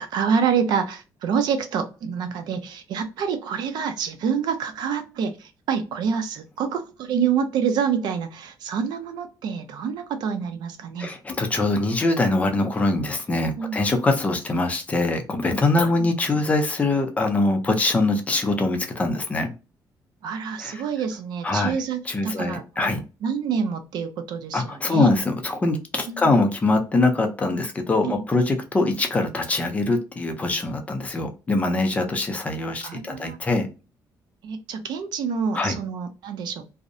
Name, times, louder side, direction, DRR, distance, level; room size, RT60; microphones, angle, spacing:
voice 1, 0.0-11.1 13.6-13.8 16.0-16.1 20.2-22.9 23.2-25.1 26.1-26.3 28.0-28.2 32.8-33.4 34.4-36.7, right 6 dB, 70° right, 8 dB, 0.5 m, -27 dB
voice 2, 11.0-19.5 20.6-20.8 21.4-21.7 22.1-23.0 24.5-33.7 35.5-35.8, left 2 dB, 20° left, 4 dB, 0.5 m, -23 dB
2.6 x 2.0 x 2.5 m, 0.31 s
cardioid pair, 155°, 8 cm